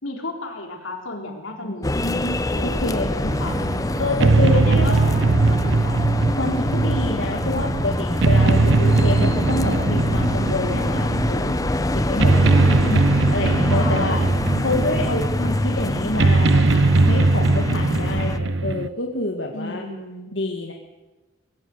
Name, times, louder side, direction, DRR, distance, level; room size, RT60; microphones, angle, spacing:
voice 1, 0.0-2.0 2.5-3.0 3.4-3.7 4.1-5.0 5.5-6.1 13.7-14.4 19.5-20.3, left 2 dB, 85° left, 2 dB, 3.8 m, -33 dB
voice 2, 1.6-3.3 4.0-5.4 6.4-12.6 12.9-14.2 14.6-19.8 20.3-20.7, left 2 dB, 65° left, 1 dB, 1.8 m, -27 dB
sound 1, 1.8-18.4, left 1 dB, 20° left, 0.7 m, -25 dB
sound 2, 3.3-18.9, right 3 dB, 70° right, 0.7 m, -20 dB
21.5 x 16.0 x 8.0 m, 1.2 s
head